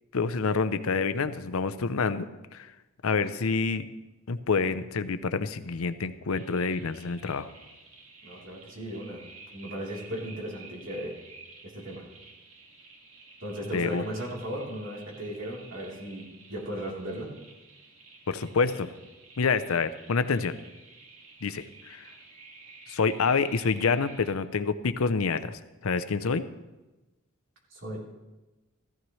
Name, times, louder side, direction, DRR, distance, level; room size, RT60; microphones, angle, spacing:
voice 1, 0.1-2.7 3.0-3.9 4.3-7.5 13.7-14.0 18.3-18.9 19.4-20.6 21.4-22.1 22.9-26.4, left 4 dB, 85° left, 12 dB, 0.6 m, -27 dB
sound 1, 6.3-24.3, right 3 dB, 85° right, 1.9 m, -52 dB
voice 2, 8.2-9.2 9.5-11.1 11.7-12.0 13.4-17.3 27.7-28.1, equal, 65° right, -4 dB, 3.4 m, -36 dB
14.5 x 14.5 x 3.1 m, 1.1 s
head